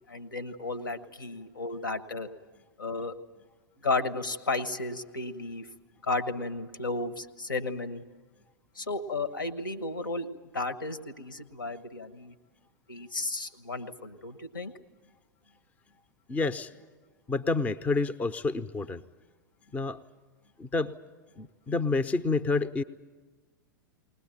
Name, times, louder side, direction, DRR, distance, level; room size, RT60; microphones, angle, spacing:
voice 1, 0.0-2.3 2.8-3.2 3.8-5.7 6.0-8.1 8.7-12.3 12.9-14.7, left 3 dB, 75° left, 10 dB, 1.5 m, -33 dB
voice 2, 16.3-16.7 17.3-19.0 19.7-20.0 20.6-20.9 21.4-22.8, left 3 dB, 15° left, 12 dB, 0.6 m, -28 dB
21.0 x 19.5 x 9.1 m, 1.3 s
figure-of-eight pair, 95°, 11 cm